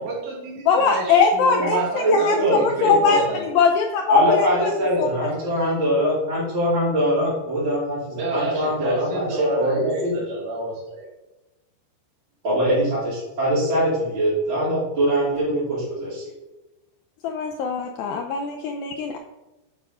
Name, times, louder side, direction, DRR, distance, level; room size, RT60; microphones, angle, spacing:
voice 1, 0.0-3.4 8.2-11.1, right 2 dB, 80° right, -3 dB, 3.6 m, -29 dB
voice 2, 0.7-4.7 5.0-5.1 5.4-5.6 17.2-19.2, left 5 dB, 90° left, 3 dB, 2.0 m, -21 dB
voice 3, 1.7-3.2 4.1-10.1 12.4-16.2, equal, 30° right, -11 dB, 3.2 m, -22 dB
9.3 x 4.8 x 5.6 m, 1.1 s
omnidirectional pair, 4.9 m